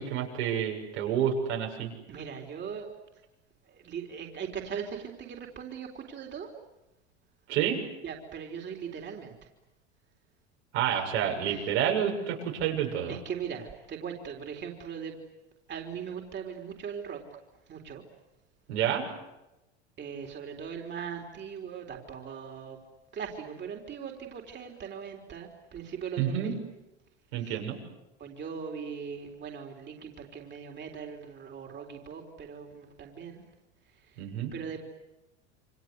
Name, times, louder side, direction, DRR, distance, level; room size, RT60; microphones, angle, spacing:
voice 1, 0.0-1.9 7.5-7.8 10.7-13.2 18.7-19.1 26.2-26.5 27.3-27.8 34.2-34.5, right 9 dB, 75° right, 1 dB, 7.3 m, -29 dB
voice 2, 2.1-2.9 3.6-6.5 8.0-9.3 11.4-11.7 13.1-15.2 15.7-17.2 17.7-18.0 20.0-22.8 23.1-26.6 27.4-27.6 28.2-33.4 33.9-34.3 34.5-34.8, right 7 dB, 30° right, 1 dB, 3.9 m, -40 dB
28.5 x 25.5 x 8.2 m, 0.99 s
hypercardioid pair, 100°, 33 cm